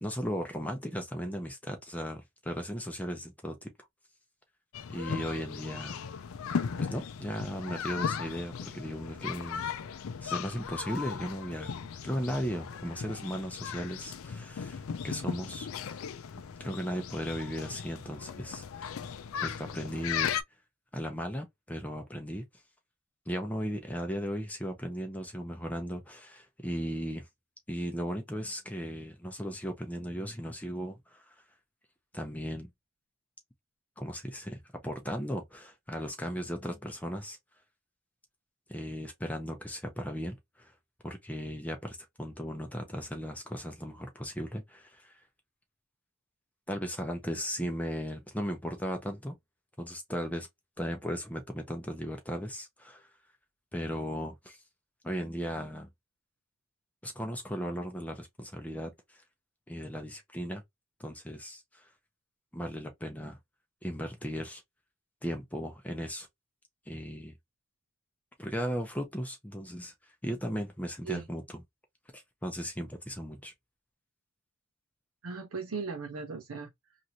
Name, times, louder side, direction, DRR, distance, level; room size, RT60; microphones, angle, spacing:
voice 1, 0.0-3.7 4.9-6.0 6.8-9.6 10.2-11.8 12.0-16.0 16.6-18.9 19.4-20.3 20.9-22.4 23.3-27.3 27.7-31.3 32.1-32.7 34.0-37.4 38.7-40.7 41.0-45.2 46.7-49.3 49.8-50.5 50.8-53.1 53.7-54.6 55.0-55.9 57.0-59.2 59.7-60.6 61.0-61.9 62.5-63.4 63.8-64.6 65.2-66.3 66.9-67.3 68.4-69.9 70.2-71.4 72.1-73.5, equal, 5° left, 0.6 m, -36 dB
sound 1, 4.7-20.4, left 7 dB, 80° left, 0.4 m, -37 dB
voice 2, 75.2-77.0, right 4 dB, 85° right, 0.6 m, -38 dB
3.1 x 2.5 x 2.7 m
head